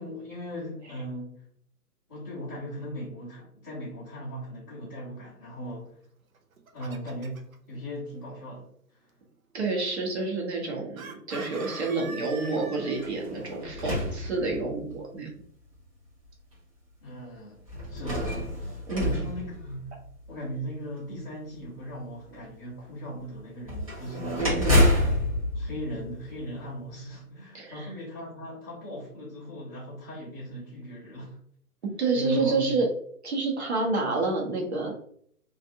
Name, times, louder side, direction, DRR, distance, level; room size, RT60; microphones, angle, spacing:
voice 1, 0.0-1.4 2.1-6.0 6.7-9.1 17.0-17.6 17.9-19.9 20.3-24.6 25.0-31.4 32.1-32.8, equal, 15° left, -11 dB, 0.7 m, -38 dB
Chicken rooster, 6.3-7.6 11.0-13.1, right 3 dB, 65° right, 0.6 m, -42 dB
voice 2, 9.5-15.3 18.9-19.1 24.4-24.9 27.5-27.9 32.0-32.9 33.2-34.9, right 3 dB, 45° right, -1 dB, 1.0 m, -28 dB
sound 1, 13.0-15.0 15.7-15.8 17.7-20.2 23.6-26.7, left 1 dB, 25° right, 0.6 m, -28 dB
2.6 x 2.5 x 2.5 m, 0.63 s
figure-of-eight pair, 140°, 46 cm